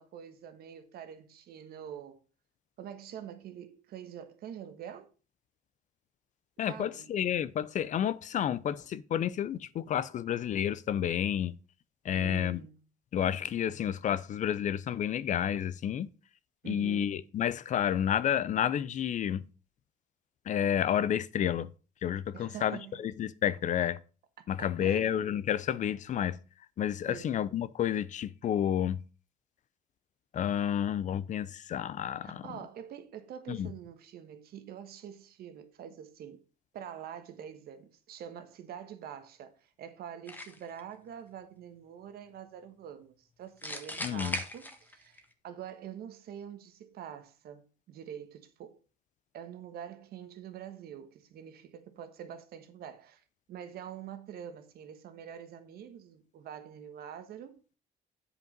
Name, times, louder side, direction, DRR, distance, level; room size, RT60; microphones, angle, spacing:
voice 1, 0.0-2.2 2.8-5.1 6.6-7.1 12.1-12.8 16.6-17.2 22.3-23.0 24.4-25.1 27.1-27.4 32.2-36.4 36.7-48.8 49.3-53.2 53.5-57.6, right 9 dB, 65° right, 1.3 m, -45 dB
voice 2, 6.6-11.5 12.0-12.6 13.1-16.1 16.6-19.4 20.5-21.7 22.0-24.0 24.5-26.4 26.8-29.0 30.3-32.5 33.5-33.7 44.0-44.4, left 10 dB, 45° left, 0.5 m, -30 dB
sound 1, 40.3-40.8 43.6-45.2, left 1 dB, 10° left, 1.2 m, -38 dB
8.0 x 5.1 x 5.2 m
cardioid pair, 110°, 17 cm